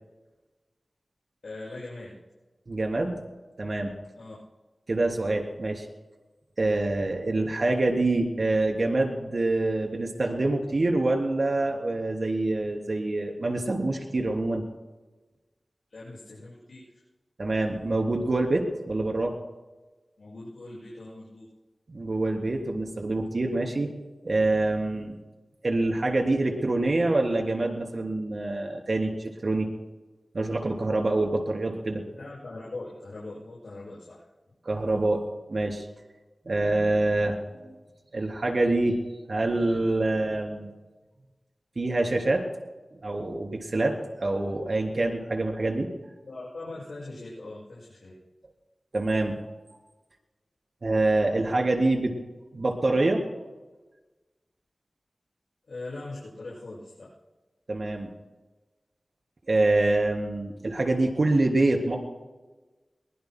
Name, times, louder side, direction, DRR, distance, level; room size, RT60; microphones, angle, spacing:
voice 1, 1.4-2.2 4.2-4.3 15.9-16.8 20.2-21.5 32.2-34.2 46.2-48.1 55.7-57.1, left 2 dB, 90° left, -9 dB, 6.7 m, -41 dB
voice 2, 2.7-3.2 3.6-3.9 4.9-5.8 6.6-14.6 17.4-19.4 21.9-23.9 24.2-25.2 25.6-29.7 30.3-32.0 34.6-35.2 35.5-35.9 36.4-37.7 38.1-39.0 39.3-40.7 41.7-42.5 43.0-45.9 48.9-49.4 50.8-52.2 52.5-53.2 57.7-58.1 59.5-62.0, right 2 dB, 60° right, 2 dB, 3.2 m, -26 dB
23.0 x 21.5 x 2.2 m, 1.2 s
wide cardioid pair, 60°, 0 cm